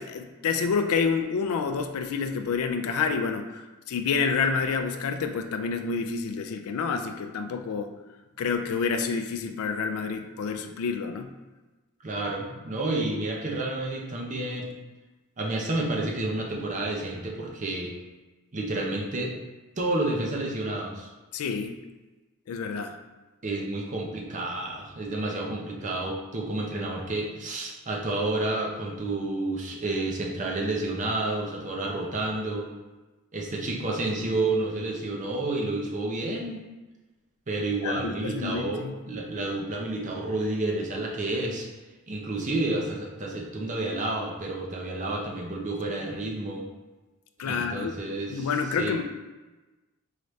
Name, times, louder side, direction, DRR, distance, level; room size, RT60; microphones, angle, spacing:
voice 1, 0.0-7.9 8.4-11.3 21.3-21.8 22.5-23.0 37.8-38.9 47.4-47.9 48.3-49.0, left 5 dB, 85° left, 6 dB, 0.4 m, -28 dB
voice 2, 12.0-14.7 15.4-18.0 18.5-19.3 19.8-21.1 23.4-32.7 33.3-36.6 37.5-41.7 42.1-46.7 47.4-48.5 48.8-49.0, right 2 dB, 35° right, -1 dB, 0.7 m, -30 dB
4.8 x 2.7 x 3.2 m, 1.2 s
head